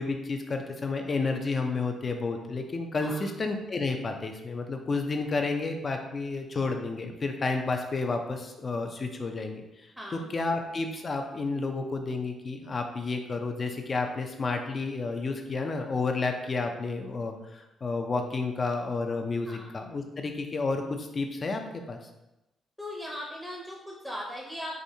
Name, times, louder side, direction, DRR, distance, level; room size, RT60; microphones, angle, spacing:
voice 1, 0.0-22.0, left 3 dB, 35° left, 4 dB, 0.5 m, -31 dB
voice 2, 3.0-3.3 10.0-10.3 19.5-19.7 22.8-24.8, equal, ahead, -2 dB, 0.7 m, -39 dB
4.9 x 2.6 x 2.7 m, 0.96 s
cardioid pair, 90°, 0 cm